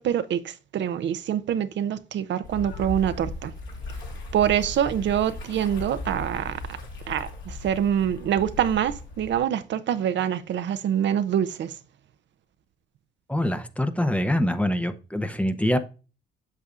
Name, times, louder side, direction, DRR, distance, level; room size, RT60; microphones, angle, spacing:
voice 1, 0.0-3.5 4.3-6.8 7.1-11.8, right 9 dB, 65° right, 0.6 m, -25 dB
sound 1, 2.4-9.4, left 2 dB, 70° left, 3.0 m, -37 dB
voice 2, 13.3-15.8, left 1 dB, 5° left, 0.7 m, -24 dB
8.2 x 6.5 x 2.4 m
cardioid pair, 90°, 20 cm